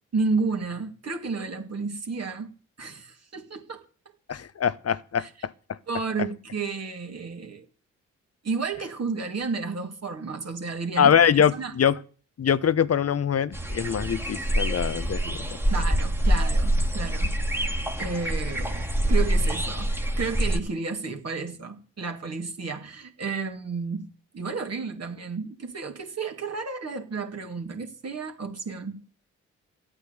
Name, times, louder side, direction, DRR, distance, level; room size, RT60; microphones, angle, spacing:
voice 1, 0.1-2.5 2.8-3.8 5.2-5.3 5.9-7.7 8.4-11.1 11.5-11.7 15.7-17.4 18.0-29.0, right 4 dB, 45° right, 2.7 m, -32 dB
voice 2, 4.3-5.8 11.0-12.0 12.4-15.5, left 8 dB, 40° left, 1.0 m, -23 dB
sound 1, 13.5-20.6, equal, 5° right, 2.1 m, -25 dB
13.0 x 8.7 x 8.2 m
hypercardioid pair, 45°, 36 cm